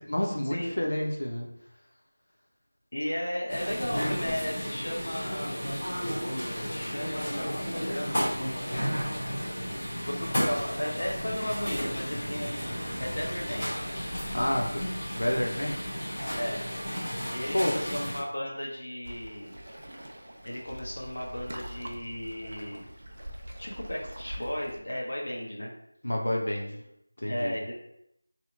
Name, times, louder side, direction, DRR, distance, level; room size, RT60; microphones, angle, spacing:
voice 1, 0.0-1.5 14.3-14.8 15.2-15.8 17.5-17.8 26.0-26.8 27.2-27.5, left 1 dB, 80° left, 0 dB, 0.6 m, -29 dB
voice 2, 2.9-5.6 6.6-8.2 10.1-13.7 16.4-16.6 17.3-19.6 20.4-22.8 23.6-25.7 27.3-27.7, equal, 40° left, -3 dB, 0.7 m, -35 dB
sound 1, 3.5-18.2, equal, 15° left, 1.0 m, -33 dB
sound 2, 9.4-16.5, equal, 75° right, 0.7 m, -44 dB
Waves surf, 19.0-24.8, equal, 40° right, 0.4 m, -43 dB
2.8 x 2.1 x 3.7 m, 0.78 s
figure-of-eight pair, 180°, 0 cm